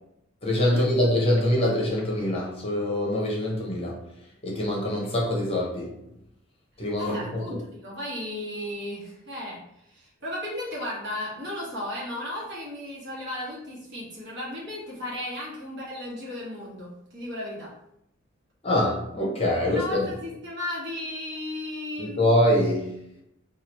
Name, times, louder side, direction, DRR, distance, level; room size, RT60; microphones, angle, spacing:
voice 1, 0.4-4.0 4.4-6.0 6.8-7.4 18.6-20.1 22.0-22.9, left 1 dB, 30° left, -3 dB, 0.7 m, -24 dB
voice 2, 7.0-9.6 9.9-17.7 19.7-22.2, left 1 dB, 55° right, -4 dB, 1.2 m, -35 dB
2.9 x 2.4 x 4.2 m, 0.80 s
head